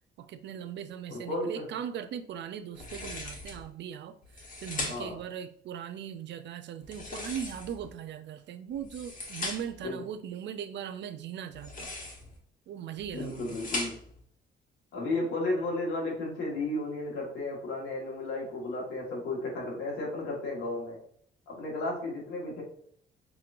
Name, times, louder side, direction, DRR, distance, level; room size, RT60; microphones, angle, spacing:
voice 1, 0.2-11.9 12.7-13.6, right 9 dB, 65° right, 10 dB, 0.4 m, -39 dB
voice 2, 1.1-1.6 4.8-5.2 9.8-10.0 13.1-13.9 14.9-21.0 21.5-22.6, left 2 dB, 85° left, -2 dB, 1.5 m, -33 dB
sound 1, 2.7-3.6 4.2-5.2 6.8-7.9 8.7-9.8 11.5-12.4 13.0-14.2, left 2 dB, 45° left, 1.2 m, -39 dB
4.7 x 3.0 x 2.5 m, 0.62 s
cardioid pair, 90°, 20 cm